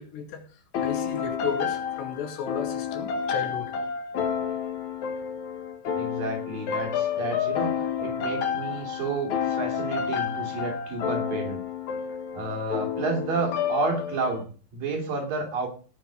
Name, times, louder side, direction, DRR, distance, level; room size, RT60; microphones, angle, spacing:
voice 1, 0.0-3.7, left 7 dB, 80° left, 4.5 m, -34 dB
sound 1, 0.7-14.4, left 7 dB, 55° left, 2.3 m, -30 dB
voice 2, 6.0-11.6 12.3-15.7, right 3 dB, 55° right, 4.7 m, -31 dB
18.0 x 6.6 x 5.1 m
omnidirectional pair, 4.8 m